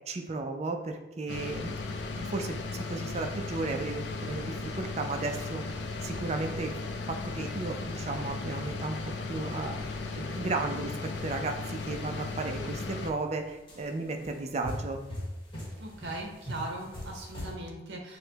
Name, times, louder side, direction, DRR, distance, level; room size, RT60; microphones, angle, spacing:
voice 1, 0.1-1.8 2.1-6.8 7.1-9.0 9.3-10.9 11.2-15.0, right 3 dB, 35° right, 4 dB, 0.3 m, -34 dB
sound 1, 1.3-13.1, left 3 dB, 60° left, 0.3 m, -36 dB
sound 2, 11.0-12.4 13.0-13.2 13.7-17.5, equal, 25° left, 1.2 m, -41 dB
voice 2, 15.8-18.2, right 2 dB, 60° right, 0 dB, 0.7 m, -39 dB
6.3 x 2.1 x 2.7 m, 1.0 s
head